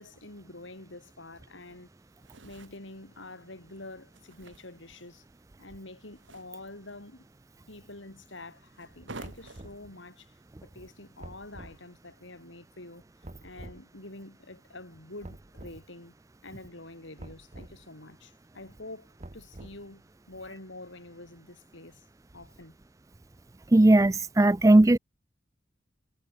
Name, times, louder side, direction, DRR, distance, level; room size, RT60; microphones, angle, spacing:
voice 1, 0.0-1.9 2.4-5.2 5.6-7.3 7.7-10.3 10.6-13.0 13.4-16.1 16.4-19.1 19.3-22.0 22.3-22.8, left 2 dB, 90° left, 4.9 m, -47 dB
sound 1, 1.6-12.0, right 3 dB, 90° right, 2.2 m, -53 dB
sound 2, 9.2-9.8 11.2-11.8 13.2-13.8 15.2-15.8 17.2-17.8 19.2-19.9, right 1 dB, 35° right, 1.0 m, -46 dB
voice 2, 23.7-25.0, right 1 dB, 15° right, 0.4 m, -18 dB
head